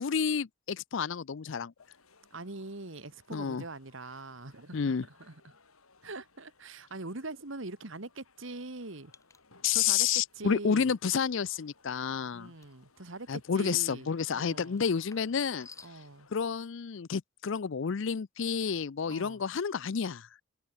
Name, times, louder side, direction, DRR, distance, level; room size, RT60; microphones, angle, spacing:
voice 1, 0.0-1.7 3.3-3.6 4.7-5.1 9.6-12.5 13.3-15.7 16.3-20.3, left 6 dB, 60° left, 0.5 m, -30 dB
sound 1, 1.8-16.4, left 4 dB, 85° left, 5.4 m, -63 dB
voice 2, 2.3-5.5 6.0-9.1 9.7-10.9 12.3-14.8 15.8-16.3 19.1-19.4, right 2 dB, 60° right, 1.9 m, -43 dB
sound 2, 9.1-9.4 9.9-10.1 12.6-12.8 14.7-16.0, left 4 dB, 15° left, 2.2 m, -54 dB
head